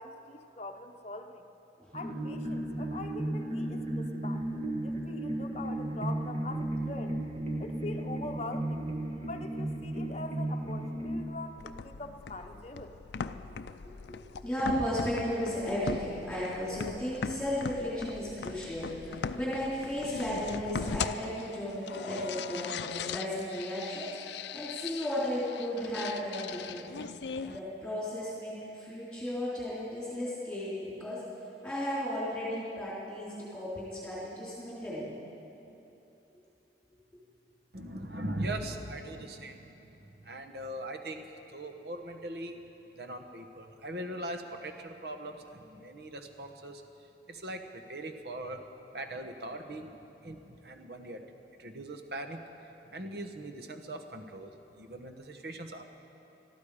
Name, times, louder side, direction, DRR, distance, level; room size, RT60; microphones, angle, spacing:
voice 1, 0.0-1.5 1.9-7.2 7.6-8.8 9.2-12.9, left 2 dB, 35° left, 5 dB, 0.8 m, -43 dB
sound 1, 1.9-11.2, right 1 dB, 35° right, 1.4 m, -34 dB
sound 2, 11.6-27.6, left 5 dB, 75° left, 0.4 m, -40 dB
voice 2, 14.0-27.1 27.4-31.2 31.6-35.1, equal, 5° left, -9 dB, 3.7 m, -35 dB
voice 3, 37.7-42.6 42.9-46.8 47.3-48.6 48.9-51.2 51.6-55.8, right 1 dB, 65° right, 6 dB, 1.1 m, -41 dB
21.0 x 13.5 x 5.0 m, 3.0 s
head